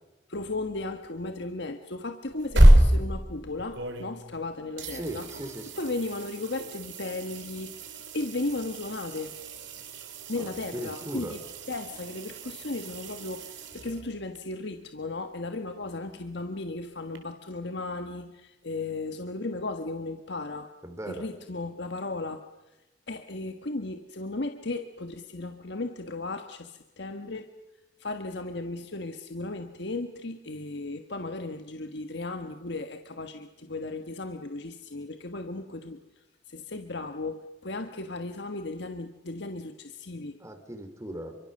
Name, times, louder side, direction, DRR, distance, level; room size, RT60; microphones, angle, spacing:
voice 1, 0.3-5.3 5.8-9.3 10.3-20.7 21.1-22.4 23.1-27.5 28.0-40.4, left 2 dB, 65° left, 6 dB, 1.4 m, -35 dB
sound 1, 2.2-4.4 4.8-14.4 17.1-17.2, right 1 dB, 80° right, 3.9 m, -27 dB
voice 2, 4.9-5.7 10.3-11.3 20.8-21.3 40.4-41.4, right 1 dB, 15° right, 5 dB, 3.2 m, -38 dB
30.0 x 24.0 x 6.7 m, 1.1 s
head